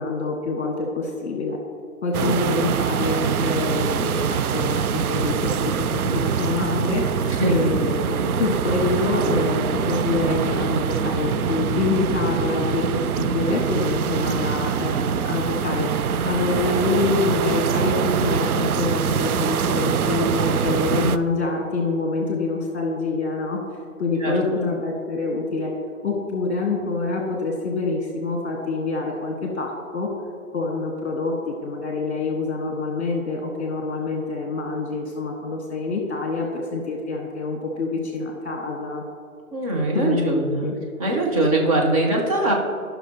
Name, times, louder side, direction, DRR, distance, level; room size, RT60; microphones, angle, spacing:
voice 1, 0.0-1.6 2.0-15.9 16.2-23.6 24.0-25.7 26.0-30.1 30.5-39.0 39.9-40.7, left 3 dB, 50° left, 0 dB, 1.5 m, -26 dB
sound 1, 2.1-21.2, right 7 dB, 75° right, 0.6 m, -24 dB
voice 2, 7.2-7.7 24.2-24.7 39.5-40.7 41.0-42.5, right 2 dB, 25° right, -2 dB, 1.2 m, -22 dB
15.0 x 6.0 x 2.9 m, 2.3 s
hypercardioid pair, 155°, 44 cm